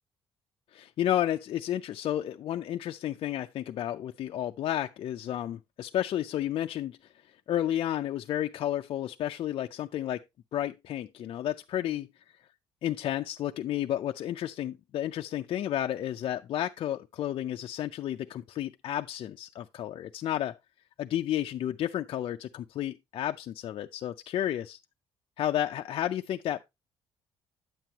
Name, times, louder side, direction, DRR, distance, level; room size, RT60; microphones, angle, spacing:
voice 1, 0.7-7.0 7.5-10.2 10.5-12.1 12.8-20.6 21.0-24.8 25.4-26.6, left 11 dB, 55° left, 0.4 m, -32 dB
9.0 x 7.6 x 2.9 m
cardioid pair, 135°, 11 cm